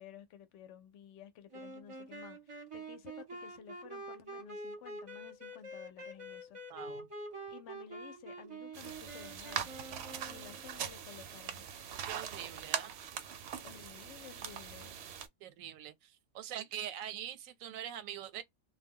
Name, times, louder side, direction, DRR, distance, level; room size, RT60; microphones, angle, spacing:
voice 1, 0.0-6.6 7.5-9.7 10.2-11.7 13.6-15.0, left 9 dB, 70° left, 0.9 m, -53 dB
sound 1, 1.5-10.7, right 1 dB, 30° right, 0.7 m, -46 dB
voice 2, 6.7-7.1 12.1-13.0 15.4-18.4, right 10 dB, 85° right, 1.0 m, -43 dB
sound 2, 8.7-15.3, right 8 dB, 65° right, 0.7 m, -41 dB
2.2 x 2.1 x 3.5 m
omnidirectional pair, 1.4 m